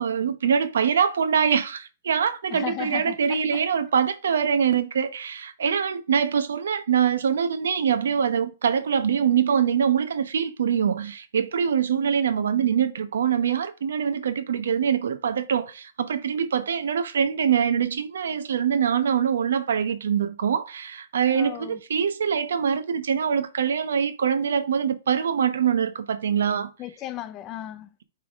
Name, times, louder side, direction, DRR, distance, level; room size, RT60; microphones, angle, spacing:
voice 1, 0.0-26.7, right 7 dB, 85° right, 0.8 m, -24 dB
voice 2, 2.5-3.6 21.3-21.8 26.8-27.9, left 13 dB, 20° left, 0.3 m, -35 dB
9.1 x 3.4 x 3.5 m
hypercardioid pair, 170°, 0 cm